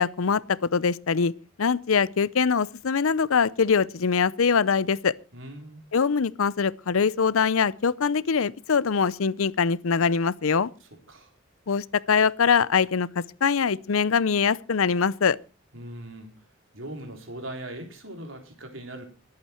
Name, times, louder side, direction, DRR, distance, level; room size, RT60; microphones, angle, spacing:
voice 1, 0.0-1.3 1.6-5.1 5.9-10.7 11.7-13.1 13.4-15.4, left 6 dB, 80° left, 0.6 m, -23 dB
voice 2, 5.3-5.8 11.1-11.3 15.7-16.3 16.7-19.0, right 1 dB, 70° right, 3.8 m, -39 dB
22.5 x 8.7 x 4.4 m
head